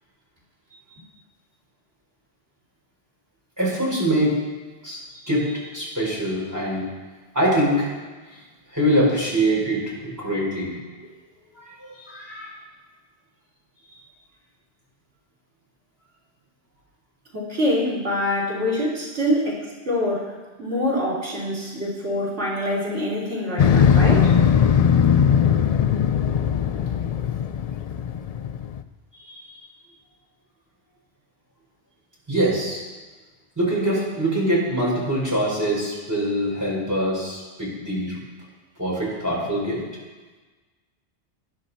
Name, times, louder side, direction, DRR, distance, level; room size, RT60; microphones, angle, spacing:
voice 1, 3.6-4.4 4.8-6.8 7.3-7.9 8.7-10.7 11.6-12.5 29.3-29.4 32.3-32.8 33.6-38.2 38.8-39.8, right 1 dB, 15° right, -6 dB, 4.8 m, -24 dB
voice 2, 17.3-24.3, left 1 dB, 80° right, -4 dB, 3.8 m, -25 dB
Motorcycle, 23.6-28.8, left 7 dB, 65° left, 0.3 m, -19 dB
18.0 x 10.5 x 4.2 m, 1.3 s
omnidirectional pair, 1.2 m